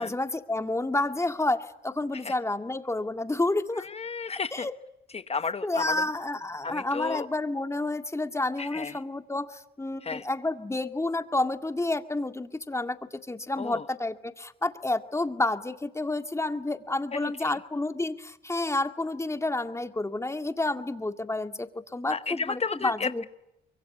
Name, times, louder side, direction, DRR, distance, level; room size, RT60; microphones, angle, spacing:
voice 1, 0.0-3.9 4.3-4.8 5.6-23.2, left 2 dB, 15° left, 7 dB, 2.1 m, -30 dB
voice 2, 3.8-4.7 5.1-5.9 6.6-7.3 8.6-8.9 10.0-10.2 13.6-13.8 17.1-17.6 22.1-23.2, left 5 dB, 30° left, 11 dB, 0.9 m, -33 dB
25.0 x 23.0 x 9.5 m, 0.85 s
cardioid pair, 90°, 20 cm